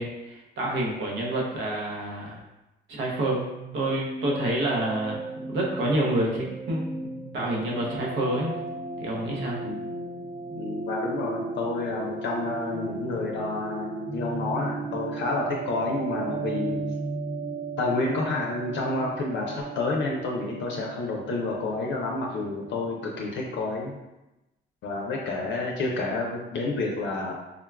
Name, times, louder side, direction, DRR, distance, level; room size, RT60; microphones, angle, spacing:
voice 1, 0.0-2.4 2.9-3.5 3.7-5.2 5.4-6.9 7.3-8.6 9.0-9.6, right 1 dB, 75° right, -2 dB, 0.8 m, -28 dB
sound 1, 3.4-22.9, right 3 dB, 35° right, 0.4 m, -36 dB
voice 2, 10.6-16.8 17.8-24.0 24.8-27.3, left 3 dB, 70° left, -2 dB, 0.5 m, -29 dB
3.5 x 2.2 x 2.3 m, 0.98 s
cardioid pair, 90°, 20 cm